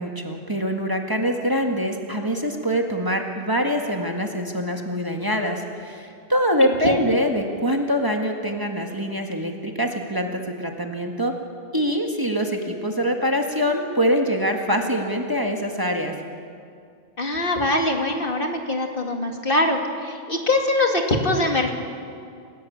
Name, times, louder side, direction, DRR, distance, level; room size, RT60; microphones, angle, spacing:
voice 1, 0.0-11.4 11.7-16.1, equal, 20° right, 2 dB, 1.9 m, -24 dB
voice 2, 6.6-7.0 17.2-21.7, left 2 dB, 50° left, 3 dB, 2.5 m, -23 dB
29.0 x 17.0 x 8.8 m, 2.3 s
omnidirectional pair, 1.2 m